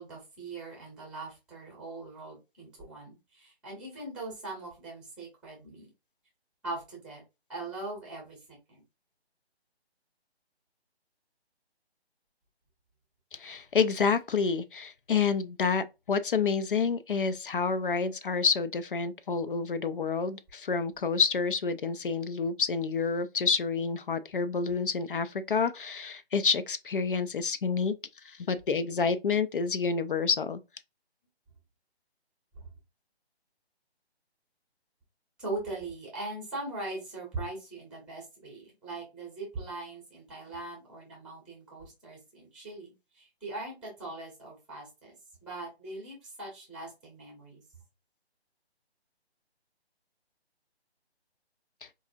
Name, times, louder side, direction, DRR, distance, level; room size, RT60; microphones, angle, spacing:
voice 1, 0.0-5.9 6.6-7.2 7.5-8.4 8.7-8.8 32.6-32.7 35.4-45.1 45.4-47.6, right 2 dB, ahead, 0.8 m, -41 dB
voice 2, 13.3-27.9 28.2-30.6, left 5 dB, 55° left, 0.4 m, -28 dB
4.6 x 2.5 x 2.6 m
figure-of-eight pair, 155°, 33 cm